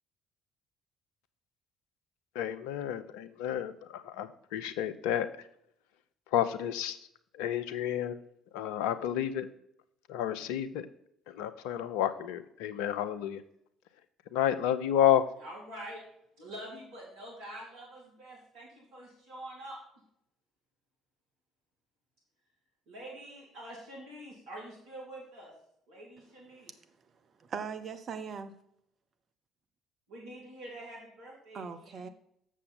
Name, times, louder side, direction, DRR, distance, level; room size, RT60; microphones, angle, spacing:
voice 1, 2.3-5.5 6.3-7.1 7.3-8.2 8.5-9.5 10.1-10.9 11.3-13.4 14.3-15.3, left 10 dB, 75° left, 12 dB, 0.6 m, -30 dB
voice 2, 15.4-16.1 16.4-19.8 22.9-25.5 25.9-26.7 30.1-32.1, right 1 dB, 70° right, -2 dB, 2.3 m, -46 dB
voice 3, 27.4-28.6 31.5-32.1, right 6 dB, 50° right, 10 dB, 0.9 m, -39 dB
7.3 x 6.8 x 3.9 m, 0.74 s
hypercardioid pair, 50°, 0 cm